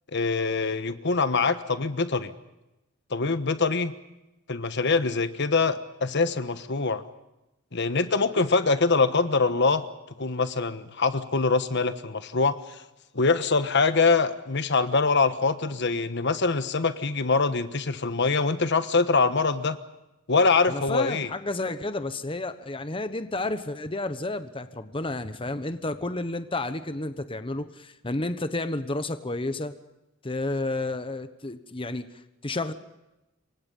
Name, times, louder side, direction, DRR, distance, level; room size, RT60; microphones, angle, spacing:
voice 1, 0.1-2.3 3.1-3.9 4.5-7.0 7.7-9.9 10.2-12.8 13.1-19.8 20.3-21.3, left 4 dB, 60° left, 11 dB, 1.3 m, -24 dB
voice 2, 20.7-29.7 30.2-32.1 32.4-32.7, left 2 dB, 25° left, 10 dB, 1.1 m, -31 dB
28.0 x 24.5 x 5.5 m, 0.96 s
head